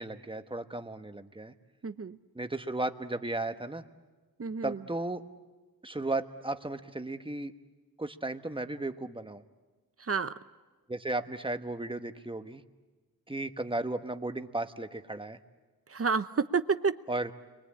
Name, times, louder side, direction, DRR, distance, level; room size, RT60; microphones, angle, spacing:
voice 1, 0.0-1.5 2.3-3.8 4.6-5.2 5.8-7.5 8.0-9.4 10.9-12.6 13.3-15.4 17.1-17.3, right 2 dB, 15° right, 8 dB, 1.2 m, -35 dB
voice 2, 1.8-2.2 4.4-4.8 10.1-10.3 15.9-16.9, right 5 dB, 40° right, 12 dB, 0.8 m, -29 dB
29.5 x 23.0 x 8.7 m, 1.3 s
wide cardioid pair, 80°, 36 cm